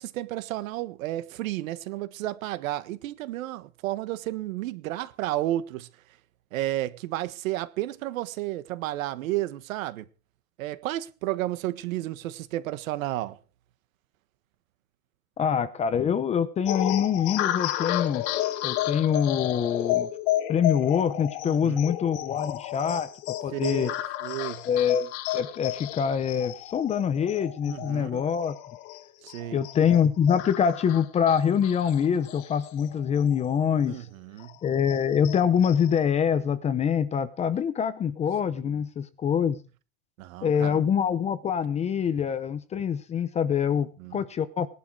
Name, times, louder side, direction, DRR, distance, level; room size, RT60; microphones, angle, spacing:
voice 1, 0.0-5.9 6.5-10.1 10.6-13.4 21.4-21.8 23.5-23.9 24.2-24.6 27.7-28.2 29.2-29.6 33.9-34.5 38.6-38.7 40.2-40.8 44.0-44.2, right 15 dB, 65° right, 1.6 m, -32 dB
voice 2, 15.4-18.3 18.6-20.1 20.5-23.9 24.7-28.6 29.5-34.1 34.6-39.6 40.4-44.7, left 8 dB, 15° left, 0.7 m, -25 dB
sound 1, 16.7-33.6 33.9-34.0 34.4-36.0, left 14 dB, 50° left, 1.8 m, -32 dB
19.0 x 11.5 x 4.7 m
supercardioid pair, 150°, 43 cm